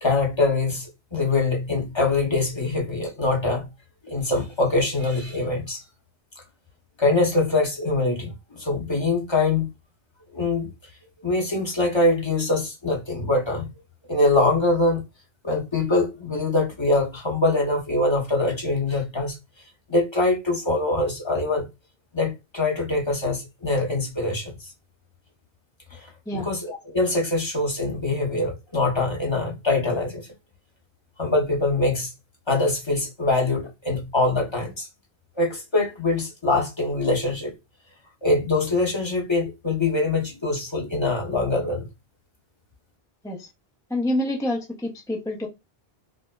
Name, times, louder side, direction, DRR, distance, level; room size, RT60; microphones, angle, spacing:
voice 1, 0.0-3.7 4.0-5.8 7.0-9.7 10.3-10.7 11.2-13.7 14.1-15.0 15.4-19.4 19.9-21.6 22.1-24.7 25.9-30.3 31.2-32.1 32.5-34.9 35.4-37.5 38.2-41.9, left 2 dB, 30° left, 0.9 m, -23 dB
voice 2, 43.9-45.5, left 1 dB, 5° left, 0.4 m, -27 dB
4.6 x 2.1 x 2.2 m
omnidirectional pair, 1.1 m